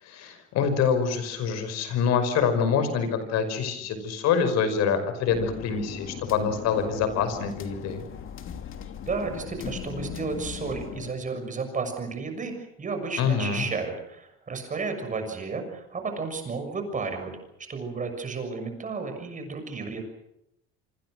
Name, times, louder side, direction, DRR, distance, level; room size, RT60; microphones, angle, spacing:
voice 1, 0.0-8.0 13.2-13.7, left 6 dB, 60° left, 10 dB, 5.6 m, -25 dB
sound 1, 5.3-11.1, left 7 dB, 45° left, 2.9 m, -39 dB
voice 2, 9.0-17.3 17.7-20.0, right 4 dB, 25° right, 6 dB, 6.6 m, -32 dB
26.5 x 25.5 x 6.3 m, 0.81 s
cardioid pair, 125°, 29 cm